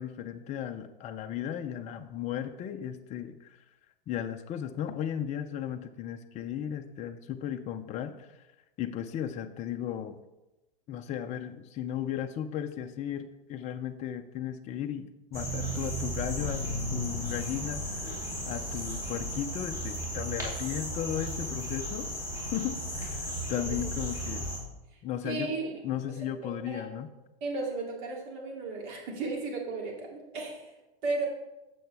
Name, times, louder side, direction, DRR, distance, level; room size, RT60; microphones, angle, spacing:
voice 1, 0.0-3.6 4.1-8.4 8.8-10.2 10.9-18.2 18.5-22.1 22.4-24.4 25.0-25.5 25.8-27.1, left 10 dB, 25° left, 7 dB, 0.5 m, -35 dB
sound 1, 15.3-24.6, equal, 10° right, 2.7 m, -35 dB
voice 2, 25.2-25.7 26.7-26.8 27.4-30.6 31.0-31.3, right 3 dB, 55° right, -1 dB, 2.7 m, -34 dB
8.4 x 6.8 x 3.4 m, 0.98 s
hypercardioid pair, 125°, 30 cm